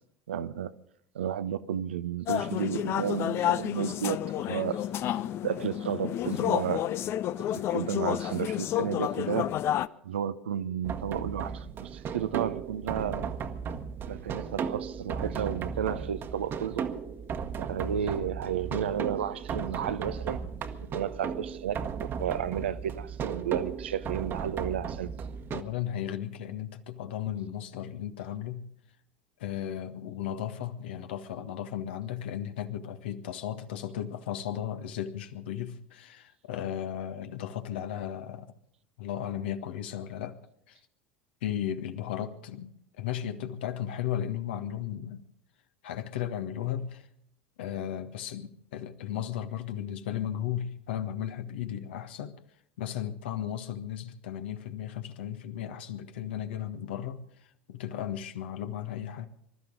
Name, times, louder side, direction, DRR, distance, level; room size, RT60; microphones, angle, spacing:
voice 1, 0.3-0.7 1.1-4.8 5.4-6.9 7.5-9.5 10.0-13.3 14.1-16.8 17.6-20.4 20.9-25.1, right 9 dB, 70° right, 0.9 m, -32 dB
sound 1, 2.3-9.9, left 12 dB, 40° left, 0.7 m, -30 dB
sound 2, 10.8-25.6, right 6 dB, 35° right, 1.4 m, -35 dB
voice 2, 25.5-28.7 29.4-38.5 39.0-40.4 40.7-40.8 41.4-45.2 45.8-47.1 47.6-52.4 52.8-57.2 57.7-59.3, left 10 dB, 65° left, 1.5 m, -35 dB
25.5 x 13.5 x 3.9 m
figure-of-eight pair, 75°, 6 cm